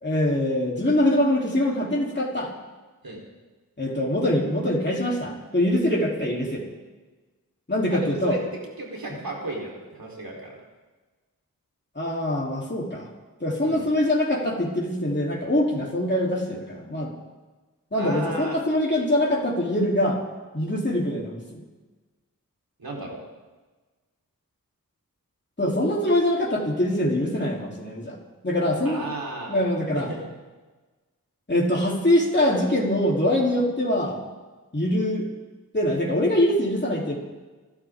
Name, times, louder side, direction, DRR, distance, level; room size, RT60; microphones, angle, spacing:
voice 1, 0.0-2.5 3.8-6.6 7.7-8.4 9.1-9.2 12.0-13.1 13.4-17.1 17.9-20.2 20.5-21.6 25.6-28.2 28.4-29.0 29.5-30.1 31.5-34.2 34.7-35.3 35.7-37.1, left 1 dB, 30° left, -3 dB, 3.3 m, -23 dB
voice 2, 7.9-8.4 8.8-10.6 13.6-13.9 18.0-18.6 22.8-23.2 28.8-29.6 29.9-30.3, right 2 dB, 85° right, -2 dB, 3.9 m, -34 dB
27.5 x 11.5 x 3.7 m, 1.3 s
cardioid pair, 40°, 35 cm